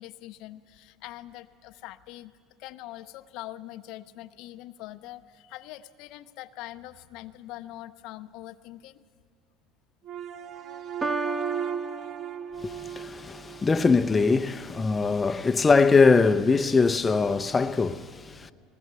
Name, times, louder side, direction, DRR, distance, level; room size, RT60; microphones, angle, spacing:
voice 1, 0.0-2.3 2.6-9.0, left 15 dB, 70° left, 0.7 m, -43 dB
sound 1, 10.0-14.4, right 8 dB, 50° right, 0.7 m, -36 dB
Piano, 11.0-13.0, right 3 dB, 20° right, 1.3 m, -34 dB
voice 2, 12.6-18.5, left 4 dB, 20° left, 0.6 m, -22 dB
20.5 x 18.0 x 8.1 m
supercardioid pair, 95°, 0 cm